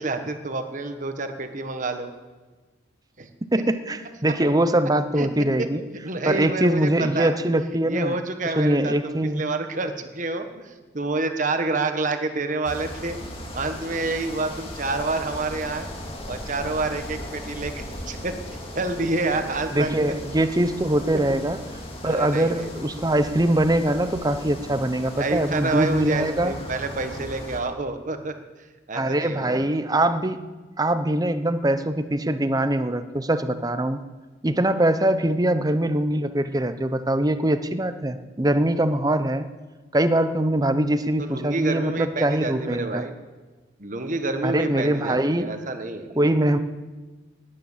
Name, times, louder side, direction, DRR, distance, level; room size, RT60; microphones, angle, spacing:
voice 1, 0.0-2.1 3.2-3.3 5.2-5.3 5.6-5.7 6.0-7.3 7.8-13.2 13.5-15.9 16.3-18.3 18.7-19.9 22.0-22.7 25.2-28.3 28.9-29.7 41.2-43.1 43.8-46.2, right 3 dB, 45° right, 7 dB, 1.4 m, -28 dB
voice 2, 3.5-5.8 6.3-8.2 8.6-9.4 19.7-21.6 22.0-26.5 28.9-30.4 30.8-34.0 34.4-39.5 39.9-43.0 44.4-45.5 46.2-46.6, right 1 dB, 20° right, 10 dB, 0.8 m, -22 dB
sound 1, 12.6-27.6, left 1 dB, 30° left, 2.3 m, -37 dB
19.5 x 8.9 x 7.4 m, 1.3 s
head